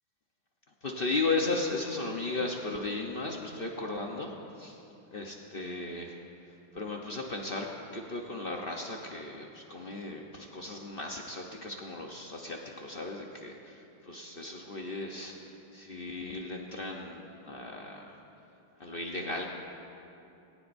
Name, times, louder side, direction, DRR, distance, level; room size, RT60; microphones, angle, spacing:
voice 1, 0.8-4.8 5.1-6.2 6.7-18.2 18.8-19.5, left 3 dB, 75° left, 0 dB, 0.5 m, -36 dB
19.5 x 18.0 x 2.6 m, 2.8 s
omnidirectional pair, 2.4 m